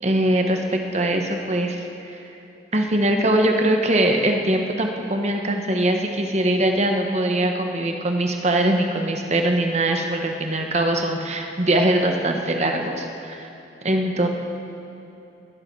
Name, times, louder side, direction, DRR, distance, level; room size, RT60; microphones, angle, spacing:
voice 1, 0.0-2.2 2.7-13.5 13.8-14.3, right 1 dB, 35° right, 3 dB, 1.1 m, -22 dB
21.0 x 9.6 x 4.6 m, 2.8 s
head